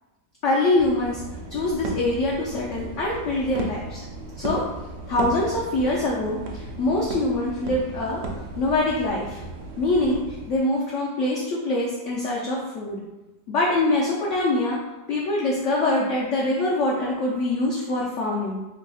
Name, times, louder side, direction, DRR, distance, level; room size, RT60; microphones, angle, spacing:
voice 1, 0.4-1.2 1.5-4.0 4.4-4.6 5.1-9.4 9.8-13.0 13.5-14.8 15.1-18.6, left 2 dB, 80° left, -3 dB, 0.6 m, -24 dB
sound 1, 0.8-10.6, right 3 dB, 90° right, 1.3 m, -35 dB
3.3 x 2.3 x 3.7 m, 1.0 s
omnidirectional pair, 1.9 m